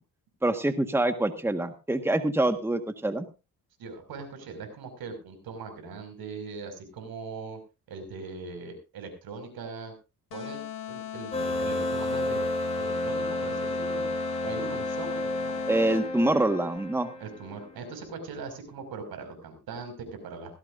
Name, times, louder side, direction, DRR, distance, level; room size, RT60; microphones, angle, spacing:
voice 1, 0.4-3.3 15.7-17.1, right 1 dB, 5° right, 8 dB, 1.5 m, -25 dB
voice 2, 3.8-7.6 7.9-9.9 10.3-12.4 12.8-14.1 14.4-15.7 17.2-20.6, right 4 dB, 80° right, 6 dB, 5.8 m, -40 dB
sound 1, 10.3-16.3, left 10 dB, 80° left, 4.4 m, -39 dB
sound 2, 11.3-17.7, left 1 dB, 15° left, 6.3 m, -31 dB
18.0 x 16.0 x 2.6 m, 0.29 s
cardioid pair, 95°, 36 cm